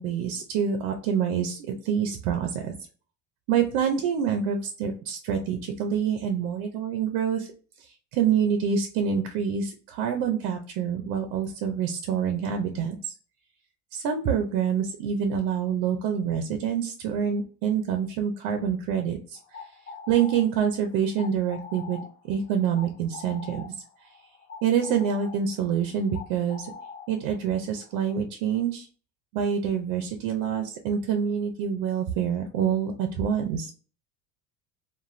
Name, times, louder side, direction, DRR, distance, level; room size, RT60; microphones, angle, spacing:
voice 1, 0.0-2.7 3.5-7.5 7.8-13.1 13.9-19.7 20.1-23.7 24.6-26.7 27.1-28.9 29.3-33.7, right 7 dB, 80° right, 5 dB, 0.5 m, -26 dB
sound 1, 19.3-28.2, left 5 dB, 35° left, 0.6 m, -45 dB
2.4 x 2.2 x 3.1 m, 0.40 s
cardioid pair, 125°, 34 cm